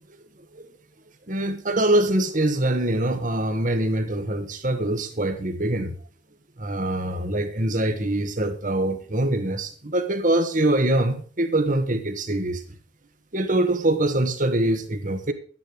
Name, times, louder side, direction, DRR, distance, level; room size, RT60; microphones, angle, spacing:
voice 1, 1.3-6.0 6.6-12.6 13.3-15.3, right 1 dB, 45° right, 1.7 m, -24 dB
12.0 x 10.0 x 5.2 m
head